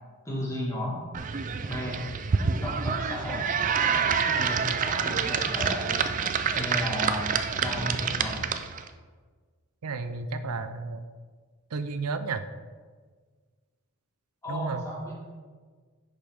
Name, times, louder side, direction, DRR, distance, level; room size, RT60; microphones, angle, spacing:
voice 1, 0.2-1.0 1.7-2.0 2.6-3.4 4.3-5.8 6.5-7.3 7.6-8.4 14.4-15.1, equal, 15° left, -5 dB, 1.8 m, -34 dB
sound 1, 1.1-8.9, right 6 dB, 35° right, 0.4 m, -27 dB
voice 2, 9.8-11.0 11.7-12.4 14.5-14.8, right 4 dB, 85° right, 10 dB, 0.6 m, -32 dB
10.0 x 5.2 x 3.6 m, 1.5 s
head